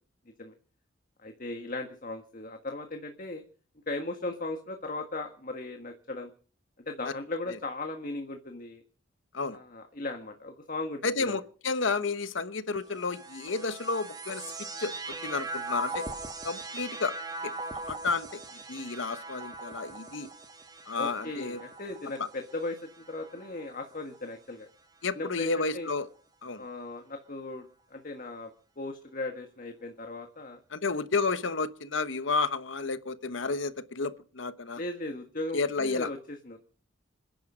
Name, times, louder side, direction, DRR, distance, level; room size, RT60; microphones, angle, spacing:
voice 1, 1.2-3.4 3.9-6.3 6.9-8.8 9.5-11.4 21.0-24.7 25.1-25.9 26.6-28.5 28.8-30.6 34.8-36.6, left 2 dB, 45° left, 1.6 m, -37 dB
voice 2, 11.0-14.5 14.8-14.9 15.2-16.1 16.4-17.2 17.4-18.3 18.7-20.3 20.9-21.6 22.2-22.3 25.0-26.1 26.4-26.6 30.7-34.8 35.5-36.1, left 4 dB, 75° left, 1.1 m, -31 dB
sound 1, 12.8-24.3 25.1-25.8, right 3 dB, 20° right, 1.5 m, -41 dB
27.0 x 10.5 x 5.0 m
head